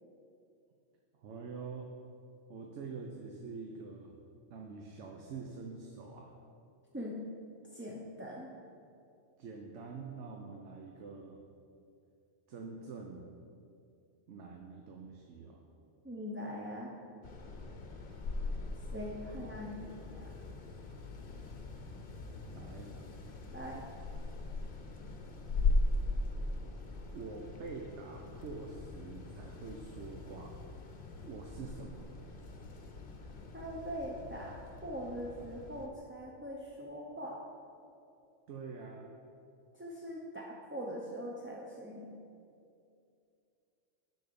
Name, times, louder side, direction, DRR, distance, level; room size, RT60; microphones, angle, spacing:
voice 1, 1.1-1.9 2.5-4.2 4.5-6.3 9.4-11.4 12.5-13.3 14.3-15.7 19.2-19.5 22.4-23.0 27.1-30.6 31.2-32.1 38.5-39.1, right 4 dB, 75° right, 1 dB, 1.0 m, -46 dB
voice 2, 6.9-7.3 7.7-8.5 16.0-16.9 18.9-20.3 23.5-23.9 33.5-37.4 39.7-42.2, equal, 15° right, -4 dB, 0.5 m, -42 dB
sound 1, 17.2-35.9, left 2 dB, 50° left, 0.9 m, -39 dB
10.5 x 4.2 x 6.8 m, 2.5 s
omnidirectional pair, 1.2 m